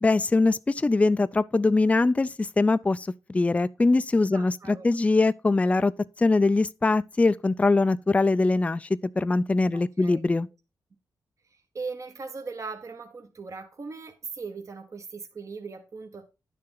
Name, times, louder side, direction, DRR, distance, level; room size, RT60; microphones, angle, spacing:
voice 1, 0.0-5.9 6.2-8.9 9.2-10.5, left 3 dB, 20° left, 0.4 m, -22 dB
voice 2, 4.3-4.9 9.7-10.2 11.5-16.3, right 4 dB, 45° right, 1.1 m, -39 dB
10.5 x 6.6 x 3.9 m
cardioid pair, 90°, 7 cm